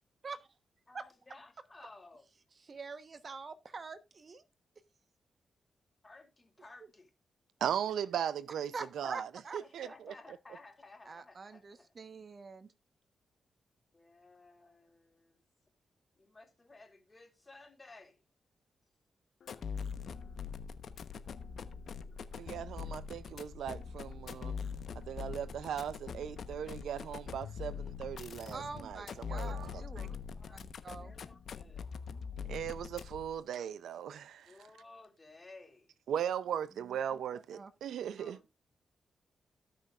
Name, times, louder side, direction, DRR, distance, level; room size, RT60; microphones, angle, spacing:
voice 1, 0.9-2.2 6.0-7.1 9.6-12.1 13.9-15.4 16.2-18.2 29.7-30.6 31.0-31.9 34.5-35.9 38.2-38.5, left 2 dB, 30° left, 3.6 m, -56 dB
voice 2, 2.7-4.4 8.7-9.6 11.1-12.7 28.5-30.2 30.5-31.1 37.1-37.2 37.5-37.7, right 4 dB, 50° right, 1.1 m, -45 dB
voice 3, 7.6-10.1 22.4-24.6 24.9-30.1 32.4-34.6 36.1-38.4, right 9 dB, 85° right, 0.5 m, -38 dB
sound 1, 19.4-33.4, left 6 dB, 70° left, 1.0 m, -43 dB
18.0 x 6.1 x 2.5 m
supercardioid pair, 55°, 0 cm